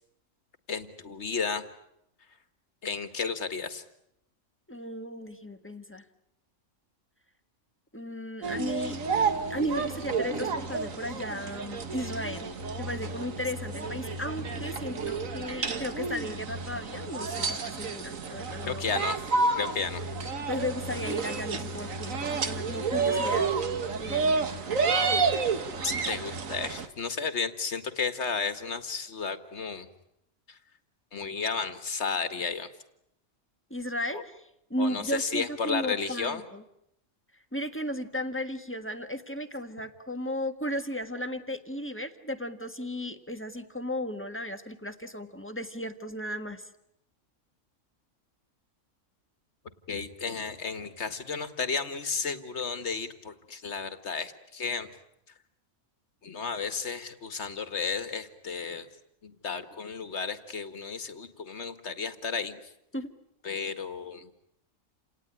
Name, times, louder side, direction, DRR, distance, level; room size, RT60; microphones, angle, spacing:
voice 1, 0.7-1.6 2.8-3.8 18.7-20.0 25.8-29.9 30.5-30.6 31.1-32.7 34.1-34.2 34.8-36.4 49.9-54.9 56.2-58.9 59.2-62.7 63.4-64.3, left 5 dB, 60° left, 10 dB, 2.0 m, -33 dB
voice 2, 4.7-6.0 7.9-9.0 9.5-12.5 12.8-18.8 20.5-23.5 24.0-24.8 33.7-36.6 37.5-46.6 62.9-63.1, equal, 10° left, 8 dB, 1.4 m, -35 dB
sound 1, 8.4-26.9, right 4 dB, 85° right, 1.9 m, -30 dB
29.0 x 18.5 x 9.9 m, 0.80 s
omnidirectional pair, 1.4 m